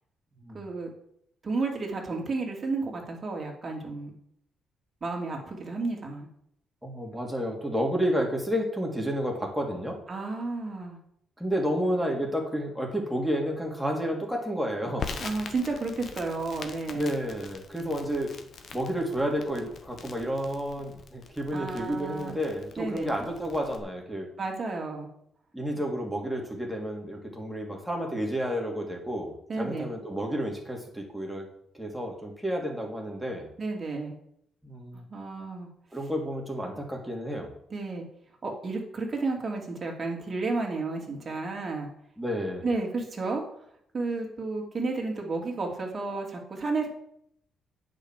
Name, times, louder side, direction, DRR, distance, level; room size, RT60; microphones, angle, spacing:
voice 1, 0.5-0.9 1.4-4.1 5.0-6.3 10.1-11.0 15.2-17.1 21.5-22.4 22.8-23.1 24.4-25.1 29.5-29.9 33.6-34.1 35.1-35.7 37.7-38.0 38.4-41.9 42.6-43.4 43.9-46.9, right 3 dB, 35° right, 1 dB, 2.8 m, -32 dB
voice 2, 6.8-10.0 11.4-15.2 16.9-18.3 18.7-24.3 25.5-31.5 31.7-33.5 34.6-35.0 35.9-37.5 42.2-42.6, equal, 5° right, 0 dB, 2.7 m, -31 dB
Crackle, 15.0-23.8, left 5 dB, 55° left, 1.2 m, -43 dB
8.8 x 5.2 x 7.5 m, 0.72 s
cardioid pair, 90°, 0 cm